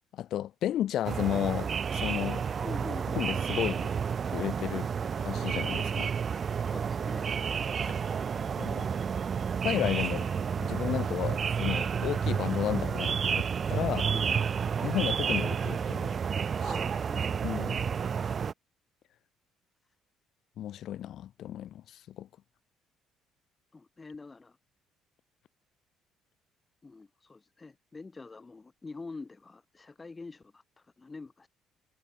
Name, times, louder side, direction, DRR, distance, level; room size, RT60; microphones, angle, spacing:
voice 1, 0.1-2.4 3.1-3.8 4.3-4.9 5.2-6.1 7.8-8.0 8.6-8.9 9.6-10.3 10.6-14.1 14.8-16.2 17.4-17.9 20.6-22.3, left 12 dB, 60° left, 1.5 m, -33 dB
sound 1, 1.0-18.5, right 6 dB, 35° right, 1.8 m, -30 dB
voice 2, 2.6-4.0 6.6-7.3 14.1-14.9 16.6-17.3 17.7-18.2 23.7-24.6 26.8-31.5, left 3 dB, 20° left, 5.8 m, -46 dB
cardioid pair, 140°, 0 cm